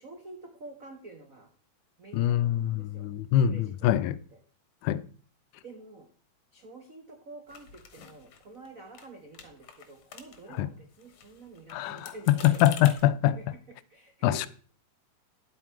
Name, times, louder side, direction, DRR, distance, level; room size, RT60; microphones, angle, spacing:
voice 1, 0.0-1.5 2.0-3.1 3.5-4.4 5.6-6.1 6.5-13.0 13.3-14.5, right 2 dB, 80° right, 0.7 m, -48 dB
voice 2, 2.1-4.2 4.8-5.0 10.6-10.7 11.7-13.4 14.2-14.5, left 12 dB, 85° left, 2.0 m, -24 dB
sound 1, 7.5-8.7 8.9-9.1 9.3-10.6 10.9-13.0, left 7 dB, 60° left, 2.1 m, -46 dB
10.5 x 8.1 x 4.5 m
omnidirectional pair, 3.5 m